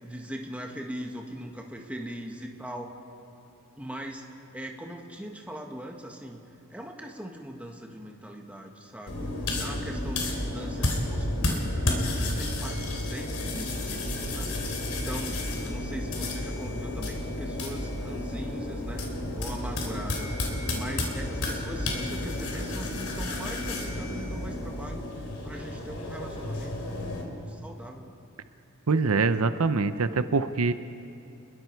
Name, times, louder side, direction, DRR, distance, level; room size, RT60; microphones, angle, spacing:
voice 1, 0.0-2.9 3.8-4.3 4.5-6.4 6.7-9.3 9.6-14.5 14.9-20.4 20.7-25.0 25.4-28.2, equal, 5° right, 1 dB, 1.6 m, -41 dB
sound 1, 9.1-27.2, left 1 dB, 80° left, 3.5 m, -31 dB
voice 2, 28.9-30.7, right 4 dB, 85° right, 11 dB, 0.7 m, -24 dB
30.0 x 21.5 x 4.6 m, 2.7 s
head